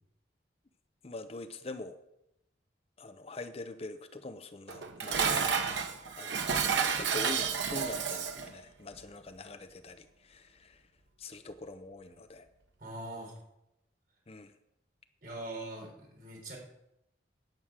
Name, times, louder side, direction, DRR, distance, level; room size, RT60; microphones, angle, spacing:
voice 1, 1.0-2.0 3.0-5.8 6.2-10.8 11.2-12.5 14.3-14.5, left 2 dB, 35° left, 10 dB, 0.6 m, -44 dB
Dishes pots and pans, 4.7-8.5, right 6 dB, 80° right, 1.2 m, -31 dB
voice 2, 12.8-13.4 15.2-16.6, right 2 dB, 50° right, 0 dB, 4.0 m, -42 dB
10.5 x 6.3 x 8.7 m, 0.85 s
head